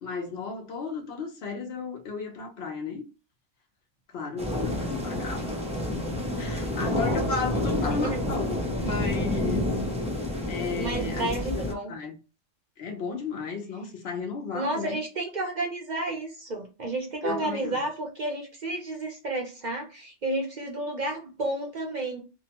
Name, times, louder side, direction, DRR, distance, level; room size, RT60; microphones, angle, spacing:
voice 1, 0.0-3.1 4.1-5.5 6.4-9.7 10.5-12.2 12.8-15.0 17.2-17.9, left 4 dB, 65° left, 0.9 m, -34 dB
sound 1, 4.4-11.7, left 1 dB, 10° right, 0.4 m, -29 dB
voice 2, 10.8-11.9 14.5-22.2, right 2 dB, 50° right, 0.6 m, -31 dB
2.8 x 2.1 x 2.8 m
omnidirectional pair, 1.2 m